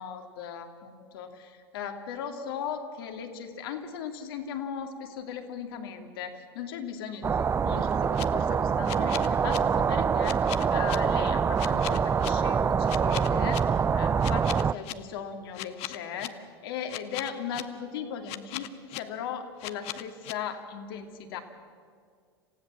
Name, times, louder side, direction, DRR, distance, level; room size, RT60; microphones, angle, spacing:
voice 1, 0.0-16.3 16.6-21.4, left 7 dB, 65° left, 5 dB, 2.4 m, -38 dB
sound 1, 7.2-14.7, right 6 dB, 20° right, 0.5 m, -25 dB
sound 2, 7.9-8.2 8.8-9.6 10.2-11.0 11.6-12.3 12.9-13.6 14.2-14.9 15.5-16.3 16.9-17.6 18.3-19.0 19.6-20.3, left 17 dB, 50° left, 1.0 m, -37 dB
27.0 x 16.0 x 7.4 m, 2.1 s
hypercardioid pair, 85°, 13 cm